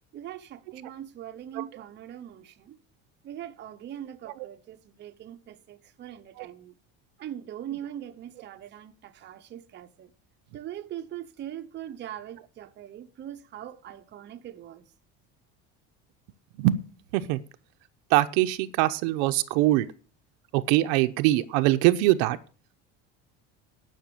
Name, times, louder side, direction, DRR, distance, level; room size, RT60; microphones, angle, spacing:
voice 1, 0.1-2.8 3.2-6.7 7.2-10.1 10.5-14.9, right 11 dB, 30° right, 0.8 m, -41 dB
voice 2, 18.1-19.9 20.5-22.4, right 16 dB, 90° right, 0.9 m, -23 dB
10.5 x 6.1 x 7.7 m
cardioid pair, 160°, 34 cm